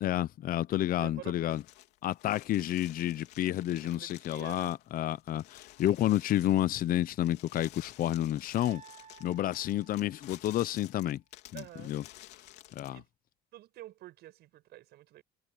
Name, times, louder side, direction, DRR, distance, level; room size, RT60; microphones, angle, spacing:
voice 1, 0.0-1.6 2.0-8.8 9.2-11.2 11.5-12.0 12.8-13.0, left 13 dB, 60° left, 0.7 m, -30 dB
voice 2, 1.0-1.7 3.8-4.8 11.5-12.1 12.9-13.1 13.5-15.2, right 15 dB, 75° right, 7.3 m, -49 dB
sound 1, 1.5-13.0, left 16 dB, 90° left, 3.4 m, -53 dB
sound 2, 8.6-10.7, right 7 dB, 50° right, 2.8 m, -54 dB
cardioid pair, 110°, 17 cm